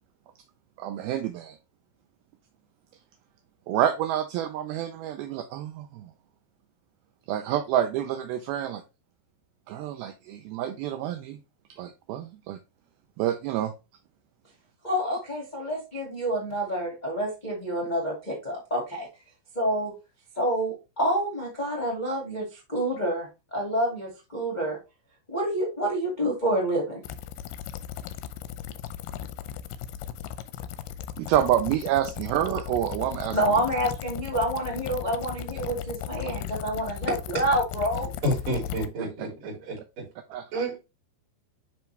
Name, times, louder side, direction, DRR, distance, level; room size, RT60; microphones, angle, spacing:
voice 1, 0.8-1.6 3.7-6.1 7.3-8.8 9.7-11.4 11.7-12.6 13.2-13.7 31.2-33.6 39.0-39.1 40.3-40.6, right 11 dB, 80° right, 2.2 m, -28 dB
voice 2, 14.8-19.1 19.5-19.9 20.3-24.8 25.3-27.0 33.3-38.1, right 1 dB, 40° left, 0.6 m, -28 dB
sound 1, 27.0-38.9, left 10 dB, 80° left, 2.3 m, -36 dB
voice 3, 38.2-40.0 40.5-40.8, right 1 dB, 50° right, 4.7 m, -30 dB
10.5 x 3.5 x 3.2 m
omnidirectional pair, 5.0 m